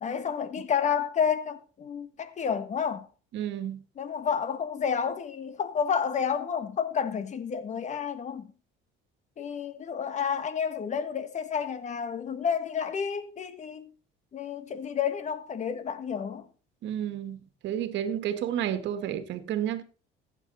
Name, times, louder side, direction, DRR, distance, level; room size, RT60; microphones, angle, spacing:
voice 1, 0.0-3.1 4.0-8.5 9.4-13.9 14.3-16.4, left 7 dB, 35° left, 1.5 m, -30 dB
voice 2, 3.3-3.8 16.8-19.8, right 10 dB, 65° right, 1.9 m, -31 dB
15.0 x 9.2 x 4.1 m
cardioid pair, 130°, 20 cm